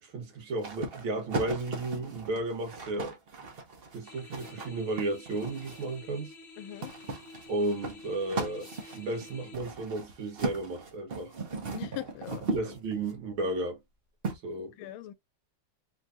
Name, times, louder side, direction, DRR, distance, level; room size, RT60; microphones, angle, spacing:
voice 1, 0.0-3.2 3.9-6.3 7.5-11.3 12.5-13.8 14.4-14.7, right 2 dB, 80° right, 2.0 m, -33 dB
sound 1, 0.6-6.0 6.8-13.2 14.2-14.4, right 3 dB, 45° right, 0.8 m, -37 dB
sound 2, 4.0-9.5, left 3 dB, 45° left, 1.0 m, -50 dB
voice 2, 6.6-6.9 11.7-12.7 14.8-15.1, left 15 dB, 85° left, 1.4 m, -41 dB
3.9 x 3.0 x 2.5 m
omnidirectional pair, 2.2 m